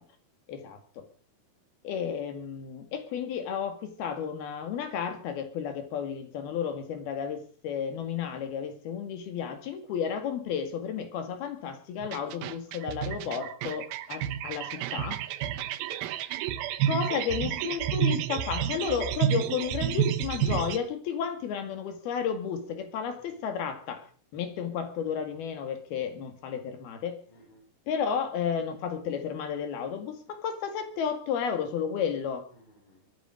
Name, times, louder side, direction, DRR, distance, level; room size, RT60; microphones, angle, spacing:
voice 1, 0.5-1.0 1.8-15.2 16.9-27.2 27.9-32.5, left 7 dB, 85° left, 8 dB, 4.1 m, -32 dB
sound 1, 12.0-20.8, right 10 dB, 85° right, 2.8 m, -30 dB
voice 2, 15.4-15.8 17.0-17.1 17.5-17.7 23.1-23.4 27.3-27.6 32.5-33.1, left 2 dB, 35° left, -3 dB, 6.5 m, -55 dB
23.0 x 10.5 x 5.1 m, 0.41 s
omnidirectional pair, 4.3 m